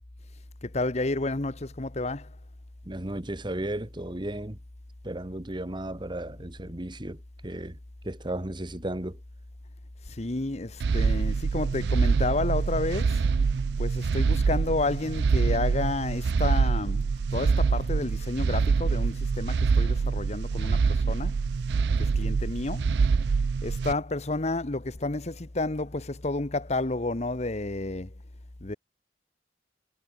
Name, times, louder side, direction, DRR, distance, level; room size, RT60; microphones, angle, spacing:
voice 1, 0.6-2.4 10.0-13.3 13.8-21.4 22.0-22.9 23.6-28.1 28.6-28.8, left 2 dB, 40° left, 1.1 m, -31 dB
voice 2, 2.9-4.6 5.0-7.2 7.4-7.8 8.0-9.2, right 1 dB, 25° right, 1.4 m, -34 dB
sound 1, 10.8-23.9, right 5 dB, 65° right, 0.4 m, -25 dB
head